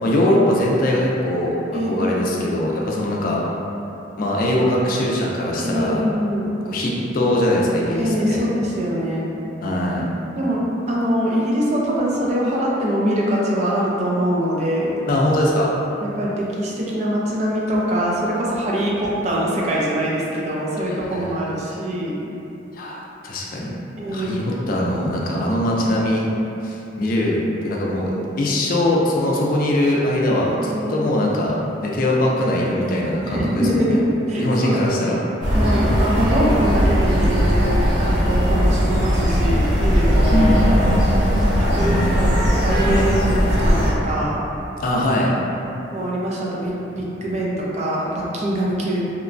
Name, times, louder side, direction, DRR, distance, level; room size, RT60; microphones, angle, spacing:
voice 1, 0.0-1.6 1.8-3.4 4.2-6.1 6.7-8.4 9.6-10.1 15.1-15.7 20.8-21.3 22.8-23.7 24.1-24.4 24.7-26.3 26.6-28.1 28.4-34.0 34.4-35.2 40.3-41.1 41.7-42.4 44.8-45.3, left 1 dB, 50° left, -3 dB, 0.4 m, -21 dB
voice 2, 1.7-2.3 5.6-6.5 7.9-9.3 10.4-15.0 16.0-22.2 24.0-24.5 30.6-31.1 33.2-35.0 35.5-40.5 41.3-44.4 45.9-49.0, equal, 40° right, -5 dB, 0.4 m, -23 dB
sound 1, 35.4-43.9, equal, 70° right, 0.7 m, -18 dB
2.9 x 2.2 x 2.5 m, 2.9 s
head